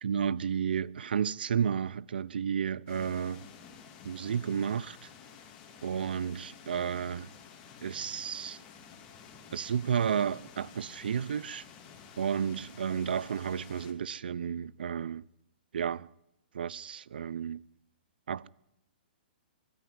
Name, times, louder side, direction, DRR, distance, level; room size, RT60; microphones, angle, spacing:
voice 1, 0.0-3.4 4.0-5.0 5.8-7.3 7.8-8.6 9.5-11.6 12.2-15.2 15.7-16.1 16.5-17.6 18.3-18.5, right 7 dB, 75° right, 0.7 m, -32 dB
sound 1, 2.9-13.9, left 7 dB, 20° left, 2.6 m, -52 dB
22.5 x 13.0 x 9.6 m
hypercardioid pair, 170°, 5 cm